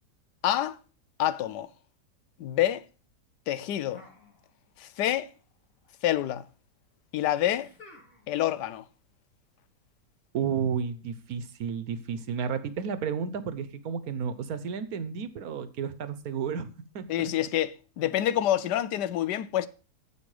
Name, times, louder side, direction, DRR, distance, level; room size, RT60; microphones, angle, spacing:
voice 1, 0.4-0.8 1.2-1.7 2.4-2.8 3.5-4.0 4.8-5.3 6.0-6.5 7.1-7.7 8.3-8.8 17.1-19.7, left 12 dB, 80° left, 1.3 m, -27 dB
sound 1, 3.9-4.9 5.1-5.9 7.5-8.5, left 3 dB, 55° left, 2.8 m, -54 dB
voice 2, 10.3-16.7 16.9-17.3, right 7 dB, 65° right, 1.3 m, -32 dB
10.0 x 7.8 x 4.9 m
omnidirectional pair, 1.8 m